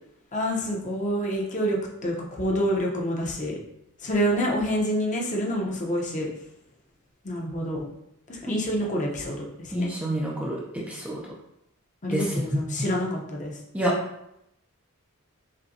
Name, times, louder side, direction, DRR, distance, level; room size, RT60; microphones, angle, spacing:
voice 1, 0.3-3.6 4.0-6.3 7.2-7.9 8.3-9.9 12.0-13.6, equal, 35° left, -2 dB, 0.7 m, -27 dB
voice 2, 9.7-11.2 12.1-12.6 13.7-13.9, right 1 dB, 5° right, -4 dB, 0.4 m, -28 dB
5.0 x 2.2 x 2.7 m, 0.82 s
head